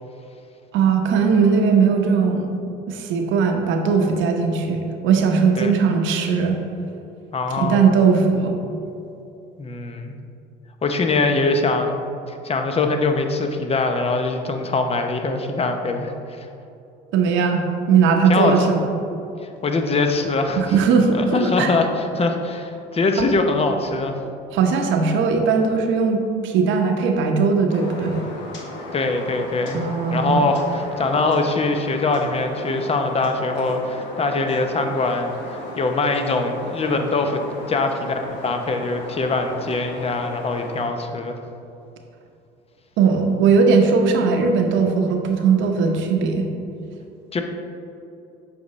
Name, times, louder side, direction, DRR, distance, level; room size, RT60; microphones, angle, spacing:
voice 1, 0.7-2.5 2.9-6.6 7.6-8.6 17.1-18.6 18.9-19.0 20.6-21.7 24.5-28.2 29.7-30.5 43.0-46.5, right 5 dB, 70° right, 3 dB, 0.9 m, -19 dB
voice 2, 7.3-7.9 9.6-10.1 10.8-16.1 16.4-16.5 18.3-18.6 19.6-20.7 21.1-24.1 28.9-37.4 37.7-41.4 47.3-47.4, left 3 dB, 30° left, 5 dB, 0.8 m, -22 dB
sound 1, 27.7-40.8, left 1 dB, 65° left, 1.4 m, -36 dB
7.7 x 5.4 x 3.2 m, 2.7 s
supercardioid pair, 85°, 20 cm